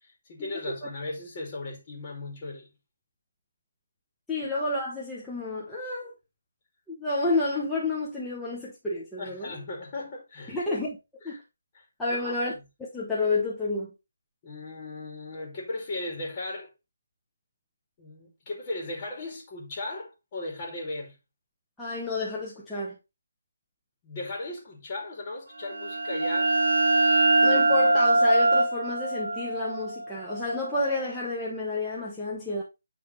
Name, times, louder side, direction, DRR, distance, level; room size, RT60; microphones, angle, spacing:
voice 1, 0.0-2.7 9.2-10.6 11.2-11.4 11.7-12.4 14.4-16.7 18.0-21.2 24.0-26.6, left 2 dB, 30° left, 2.3 m, -37 dB
voice 2, 4.3-6.1 6.9-9.5 10.5-11.0 11.2-11.4 12.0-12.5 12.8-13.9 21.8-23.0 27.4-32.6, left 2 dB, 5° left, 1.1 m, -30 dB
sound 1, 25.6-31.1, right 2 dB, 80° right, 0.8 m, -23 dB
10.0 x 3.4 x 3.1 m
figure-of-eight pair, 155°, 0 cm